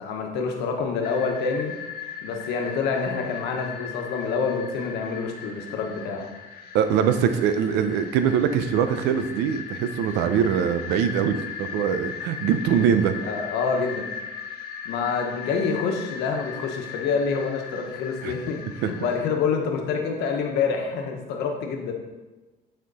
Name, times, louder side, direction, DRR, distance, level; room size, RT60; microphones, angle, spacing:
voice 1, 0.0-1.7 2.2-6.3 13.2-14.1 14.8-21.9, left 5 dB, 85° left, 2 dB, 1.2 m, -27 dB
sound 1, 1.0-19.3, left 7 dB, 65° left, 1.2 m, -38 dB
voice 2, 6.7-13.2 18.2-18.4 18.8-18.9, right 8 dB, 90° right, 9 dB, 0.6 m, -23 dB
9.2 x 4.3 x 4.1 m, 1.1 s
cardioid pair, 110°, 17 cm